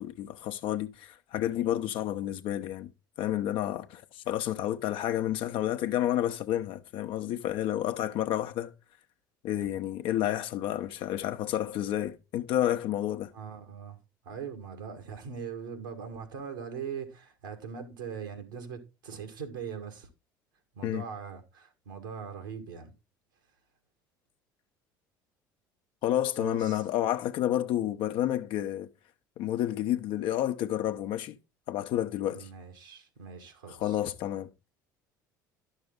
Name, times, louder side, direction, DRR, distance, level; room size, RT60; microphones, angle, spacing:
voice 1, 0.0-2.9 3.2-8.7 9.4-13.3 20.8-21.1 26.0-28.9 29.4-31.4 31.7-32.5 33.7-34.5, left 12 dB, 55° left, 0.9 m, -30 dB
voice 2, 13.3-14.0 14.3-20.1 20.8-22.9 26.4-26.8 32.3-34.0, right 7 dB, 75° right, 1.7 m, -41 dB
11.0 x 6.5 x 3.7 m
figure-of-eight pair, 60°, 11 cm